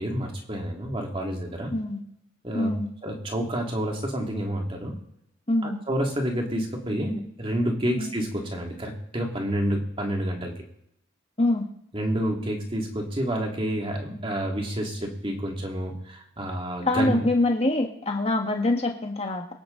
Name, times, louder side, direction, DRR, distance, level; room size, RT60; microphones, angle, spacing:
voice 1, 0.0-1.7 2.4-2.7 3.0-5.0 5.6-10.5 11.9-17.2, equal, 25° right, 1 dB, 2.4 m, -29 dB
voice 2, 1.7-2.0 2.5-2.9 5.5-5.8 8.0-8.1 11.4-11.7 16.8-19.5, left 2 dB, 30° left, 3 dB, 1.7 m, -25 dB
23.5 x 9.3 x 3.9 m, 0.78 s
head